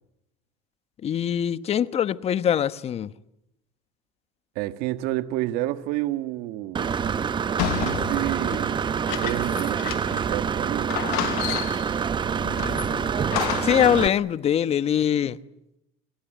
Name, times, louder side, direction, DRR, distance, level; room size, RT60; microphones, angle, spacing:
voice 1, 1.0-3.1 12.4-13.1 13.6-15.4, left 9 dB, 40° left, 1.1 m, -23 dB
voice 2, 4.5-6.9 7.5-8.8 9.2-10.9, right 16 dB, 70° right, 1.6 m, -30 dB
Engine / Mechanisms, 6.7-14.1, right 7 dB, 30° right, 1.0 m, -26 dB
sound 1, 7.6-10.3 10.6-10.7 10.9-12.0 12.6-13.9, left 19 dB, 75° left, 1.2 m, -31 dB
28.0 x 21.0 x 9.2 m
supercardioid pair, 100°, 16 cm